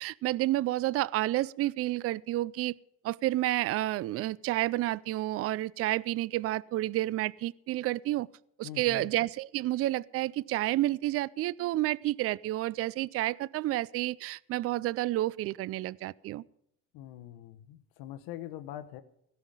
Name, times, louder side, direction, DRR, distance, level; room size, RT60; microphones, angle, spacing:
voice 1, 0.0-2.8 3.0-8.3 8.6-16.4, right 16 dB, 40° right, 23 dB, 0.4 m, -30 dB
voice 2, 8.6-9.1 16.9-19.0, left 12 dB, 75° left, 10 dB, 1.2 m, -43 dB
17.0 x 5.8 x 8.9 m, 0.76 s
cardioid pair, 115°, 37 cm